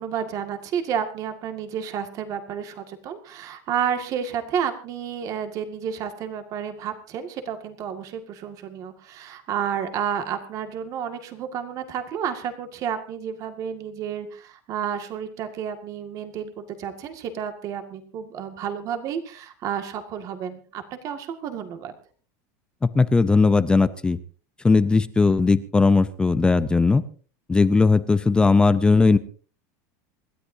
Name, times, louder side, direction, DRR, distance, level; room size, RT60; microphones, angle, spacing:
voice 1, 0.0-21.9, right 8 dB, 40° right, 7 dB, 2.0 m, -31 dB
voice 2, 22.8-24.2 24.6-27.0 27.5-29.2, left 4 dB, 10° left, 14 dB, 0.6 m, -18 dB
27.0 x 13.0 x 2.7 m, 0.40 s
supercardioid pair, 155°, 9 cm